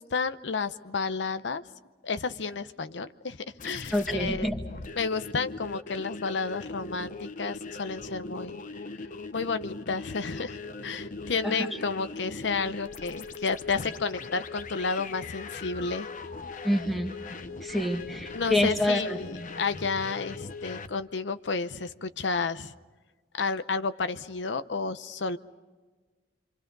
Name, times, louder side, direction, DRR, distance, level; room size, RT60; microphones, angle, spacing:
voice 1, 0.0-1.6 2.0-3.4 3.6-4.5 4.9-8.6 9.3-16.1 18.3-22.7 23.4-25.4, left 4 dB, 85° left, 11 dB, 0.8 m, -31 dB
sound 1, 3.6-20.9, left 3 dB, 45° left, 0.9 m, -40 dB
voice 2, 3.9-4.6 11.4-11.6 16.6-17.2 17.6-19.2, left 1 dB, ahead, 2 dB, 1.9 m, -27 dB
27.5 x 26.0 x 5.3 m, 1.3 s
head